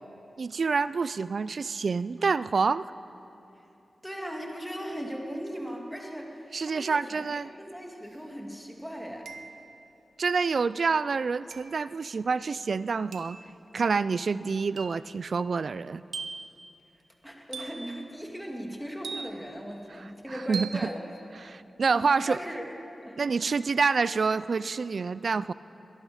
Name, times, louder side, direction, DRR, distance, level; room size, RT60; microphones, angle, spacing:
voice 1, 0.4-2.8 6.5-7.5 10.2-13.4 13.7-16.0 20.3-20.7 21.4-22.4 23.2-25.5, right 4 dB, 70° right, 16 dB, 0.3 m, -27 dB
voice 2, 4.0-9.3 17.2-21.0 21.8-22.7 23.0-23.5, equal, ahead, 0 dB, 2.4 m, -38 dB
sound 1, 8.1-8.2 9.3-9.8 11.5-11.8 13.1-13.4 14.8-15.1 16.1-16.6 17.5-17.9 19.0-19.6 20.5-20.9, right 5 dB, 90° right, 0.8 m, -40 dB
21.5 x 12.0 x 5.0 m, 2.8 s
cardioid pair, 55°, 0 cm